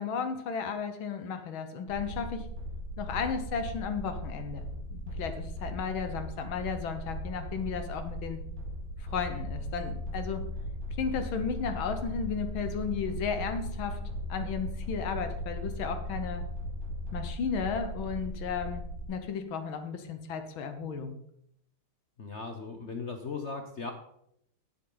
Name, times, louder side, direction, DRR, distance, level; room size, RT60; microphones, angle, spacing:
voice 1, 0.0-2.5 3.0-8.4 9.0-10.4 11.0-14.0 14.3-16.5 17.1-21.2, left 6 dB, 75° left, 8 dB, 1.8 m, -34 dB
sound 1, 1.9-19.1, equal, 65° right, 2.8 m, -37 dB
voice 2, 22.2-23.9, left 4 dB, 55° left, 5 dB, 0.7 m, -37 dB
10.5 x 9.9 x 3.9 m, 0.73 s
omnidirectional pair, 2.3 m